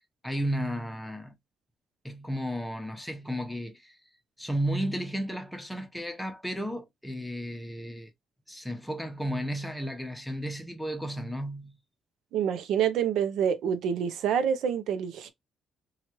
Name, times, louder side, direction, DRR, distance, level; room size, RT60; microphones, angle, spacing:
voice 1, 0.2-1.3 2.0-4.0 4.4-8.1 8.5-11.8, equal, 5° left, 0.8 m, -33 dB
voice 2, 12.3-15.3, right 8 dB, 80° right, 0.5 m, -27 dB
3.0 x 2.4 x 2.9 m
cardioid pair, 90°, 0 cm